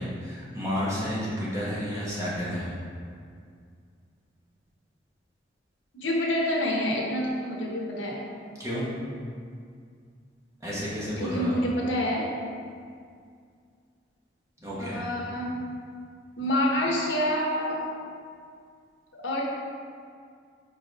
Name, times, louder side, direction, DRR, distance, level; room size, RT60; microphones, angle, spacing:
voice 1, 0.0-2.7 8.6-8.8 10.6-11.6 14.6-15.0, equal, 15° right, -8 dB, 1.3 m, -31 dB
voice 2, 5.9-8.2 11.2-12.3 14.8-15.6 16.4-17.8 19.1-19.4, left 1 dB, 85° left, -2 dB, 1.0 m, -27 dB
5.3 x 4.2 x 4.6 m, 2.2 s
head